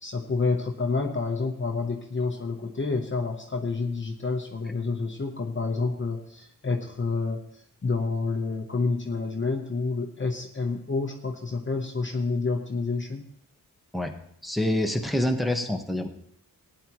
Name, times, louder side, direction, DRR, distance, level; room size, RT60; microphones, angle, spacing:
voice 1, 0.0-7.4 7.8-13.3, left 4 dB, 35° left, 2 dB, 0.9 m, -28 dB
voice 2, 14.4-16.1, left 1 dB, ahead, 3 dB, 1.1 m, -26 dB
18.0 x 10.0 x 3.0 m, 0.70 s
wide cardioid pair, 135°, 34 cm